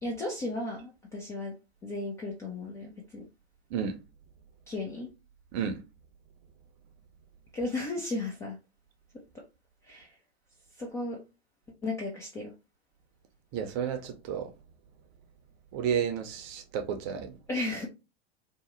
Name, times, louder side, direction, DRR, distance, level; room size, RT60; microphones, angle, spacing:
voice 1, 0.0-3.3 4.7-5.1 7.5-8.6 9.1-9.5 9.8-10.2 10.7-11.2 11.8-12.5 17.5-17.9, left 2 dB, 10° left, 0.3 m, -35 dB
voice 2, 13.5-14.5 15.7-17.3, right 7 dB, 35° right, 0.6 m, -31 dB
2.8 x 2.1 x 3.1 m
figure-of-eight pair, 95°, 32 cm